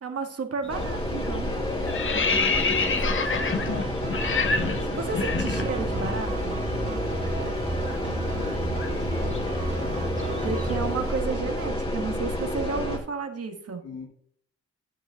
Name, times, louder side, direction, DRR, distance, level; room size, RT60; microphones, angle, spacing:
voice 1, 0.0-1.5 4.2-6.6 10.2-13.8, right 4 dB, 55° right, 4 dB, 1.9 m, -32 dB
sound 1, 0.6-0.9 1.2-6.2 6.4-6.6 6.9-11.0, left 4 dB, 45° left, 1.3 m, -29 dB
sound 2, 0.7-13.0, left 1 dB, 20° left, 2.9 m, -30 dB
voice 2, 1.4-4.1 4.5-5.3 8.0-9.5 13.8-14.0, left 4 dB, 85° left, -4 dB, 2.5 m, -39 dB
sound 3, 3.3-10.9, right 2 dB, 25° right, 1.8 m, -33 dB
10.0 x 9.9 x 2.5 m, 0.66 s
supercardioid pair, 50°, 29 cm